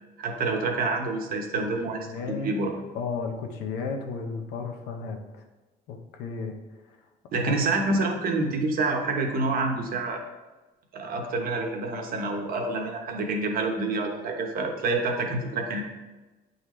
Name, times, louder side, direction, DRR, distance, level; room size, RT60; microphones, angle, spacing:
voice 1, 0.2-2.1 2.4-2.7 7.3-10.2 10.9-15.8, right 3 dB, 60° right, 2 dB, 1.0 m, -27 dB
voice 2, 1.5-2.6 2.9-5.4 5.9-6.5 6.9-7.0 7.3-7.6, left 4 dB, 85° left, 4 dB, 0.9 m, -34 dB
8.1 x 4.0 x 3.1 m, 1.2 s
cardioid pair, 110°, 17 cm